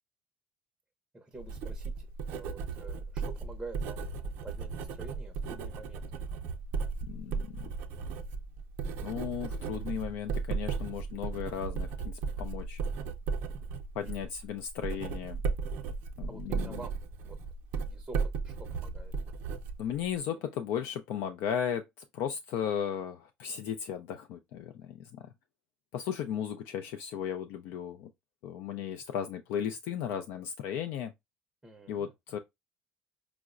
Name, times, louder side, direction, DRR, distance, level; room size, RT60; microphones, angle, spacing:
voice 1, 1.1-6.0 14.0-14.3 16.3-16.9 17.2-17.4 17.7-18.5 18.8-19.1 20.5-20.6 26.3-26.4 31.6-32.1, right 2 dB, 10° right, 0.5 m, -48 dB
Writing, 1.3-20.2, right 5 dB, 75° right, 0.5 m, -36 dB
voice 2, 7.0-7.7 9.0-12.8 14.0-15.4 16.2-16.8 19.8-21.9 22.1-25.3 25.9-28.1 28.4-31.1 31.9-32.4, left 9 dB, 80° left, 0.4 m, -35 dB
4.6 x 2.0 x 2.4 m
cardioid pair, 135°, 4 cm